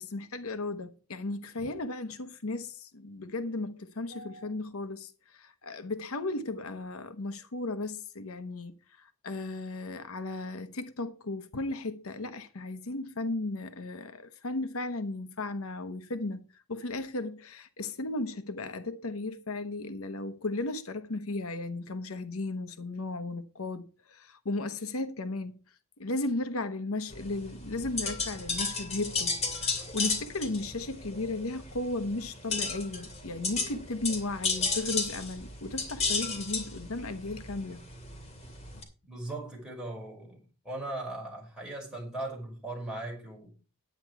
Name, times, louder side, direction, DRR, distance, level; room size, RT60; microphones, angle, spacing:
voice 1, 0.0-25.5 26.0-29.3 29.9-37.8, left 2 dB, 75° left, 0.9 m, -35 dB
sound 1, 27.1-38.8, left 4 dB, 30° left, 2.6 m, -34 dB
voice 2, 39.1-40.4 40.6-43.5, right 2 dB, 5° right, 5.5 m, -38 dB
10.5 x 9.2 x 4.7 m
head